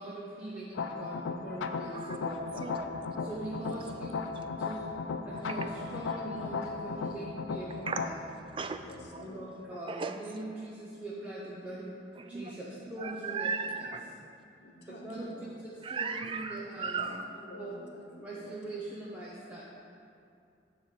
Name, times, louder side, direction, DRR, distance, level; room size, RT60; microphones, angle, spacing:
voice 1, 0.0-2.8 3.2-4.2 4.6-4.9 5.2-8.2 9.2-12.0 12.3-13.5 14.9-15.3 15.6-17.0 17.6-17.7 18.2-19.6, right 1 dB, 5° right, -8 dB, 0.7 m, -42 dB
sound 1, 0.7-8.1, left 4 dB, 90° left, 0.4 m, -36 dB
sound 2, 2.2-9.0, left 1 dB, 45° right, 1.2 m, -53 dB
voice 2, 2.6-3.4 3.7-3.8 5.5-5.6 7.9-8.0 8.5-8.8 9.1-9.2 9.9-10.2 12.2-12.5 12.8-14.0 15.8-17.2, right 5 dB, 30° right, 8 dB, 0.3 m, -37 dB
voice 3, 3.4-4.1 8.8-9.6 13.2-14.1 14.6-15.6 17.0-19.0 19.5-19.6, left 1 dB, 65° left, 0 dB, 1.0 m, -50 dB
9.3 x 3.3 x 6.7 m, 2.5 s
head